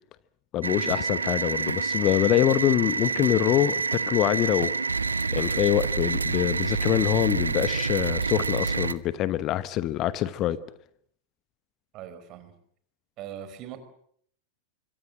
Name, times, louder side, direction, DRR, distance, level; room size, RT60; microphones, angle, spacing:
voice 1, 0.5-4.7 5.3-10.6, left 13 dB, 35° left, 1.1 m, -25 dB
sound 1, 0.6-8.9, right 4 dB, 75° right, 1.1 m, -27 dB
voice 2, 11.9-12.5 13.2-13.8, right 10 dB, 40° right, 4.7 m, -40 dB
26.5 x 24.0 x 7.6 m
figure-of-eight pair, 90°, 0 cm